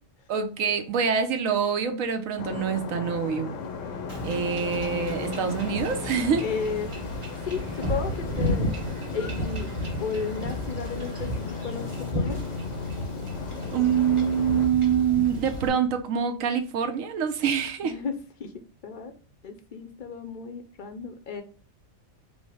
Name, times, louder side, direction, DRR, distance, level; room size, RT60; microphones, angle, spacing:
voice 1, 0.3-3.5 4.2-6.4 13.7-17.9, right 7 dB, 80° right, 6 dB, 1.1 m, -25 dB
sound 1, 2.4-14.7, left 4 dB, 70° left, 0.9 m, -35 dB
Wind / Ocean / Boat Water vehicle, 4.1-15.7, equal, 25° right, 0.8 m, -33 dB
voice 2, 6.4-9.7 10.0-12.4 17.8-19.1 19.4-21.4, left 5 dB, 55° left, 6 dB, 0.6 m, -34 dB
5.3 x 2.0 x 4.8 m, 0.38 s
omnidirectional pair, 1.4 m